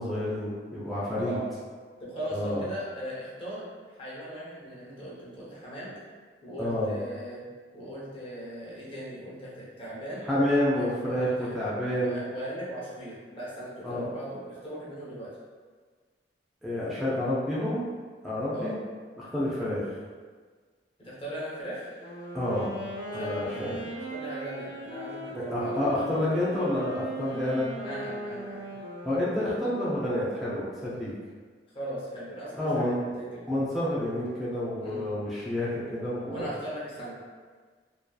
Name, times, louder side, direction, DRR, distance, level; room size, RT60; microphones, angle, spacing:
voice 1, 0.0-1.4 2.3-2.6 6.6-6.9 10.2-12.2 13.8-14.1 16.6-17.9 18.2-18.7 19.2-19.8 22.3-22.7 23.1-23.8 25.3-27.7 29.0-31.1 32.6-33.0 33.5-36.5, left 1 dB, ahead, -9 dB, 0.4 m, -29 dB
voice 2, 1.1-1.5 2.0-5.9 6.4-7.4 7.7-10.3 10.7-11.5 11.9-15.3 18.5-18.8 21.0-21.9 23.1-23.7 24.1-25.9 27.2-27.4 27.8-28.7 31.7-33.5 34.8-35.1 36.3-37.2, right 1 dB, 30° left, -7 dB, 0.7 m, -38 dB
Wind instrument woodwind instrument, 21.9-30.0, right 1 dB, 80° left, 0.7 m, -39 dB
2.6 x 2.2 x 2.2 m, 1.5 s
head